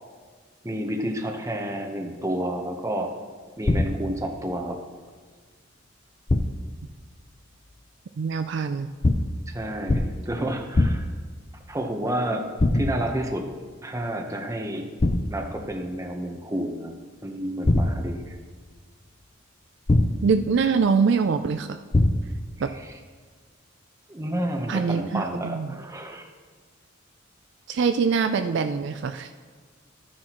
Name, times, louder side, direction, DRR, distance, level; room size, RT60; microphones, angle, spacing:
voice 1, 0.6-3.1 3.6-4.8 9.5-11.1 11.7-12.4 12.7-13.5 13.8-14.9 15.3-16.9 17.2-18.4 24.1-26.2, right 1 dB, 15° right, 3 dB, 0.9 m, -30 dB
sound 1, 3.6-4.2 6.3-6.8 9.0-9.5 9.9-10.3 10.7-11.3 12.6-13.2 15.0-15.5 17.6-18.3 19.9-20.4 21.9-22.5, left 2 dB, 30° left, 0.5 m, -23 dB
voice 2, 8.2-8.9 20.2-21.8 22.6-22.7 24.7-25.8 27.7-29.5, right 5 dB, 60° right, 8 dB, 0.4 m, -24 dB
12.0 x 9.8 x 3.0 m, 1.5 s
head